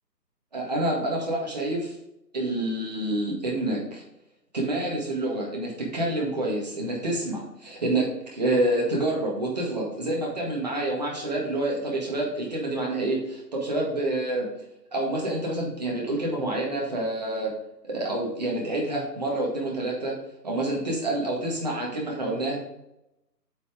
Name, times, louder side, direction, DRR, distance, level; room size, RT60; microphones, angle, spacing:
voice 1, 0.5-1.9 2.3-4.0 4.5-14.5 14.9-17.5 17.8-20.1 20.4-22.6, right 1 dB, 25° right, -2 dB, 1.7 m, -28 dB
8.3 x 5.5 x 3.6 m, 0.87 s
figure-of-eight pair, 170°, 50 cm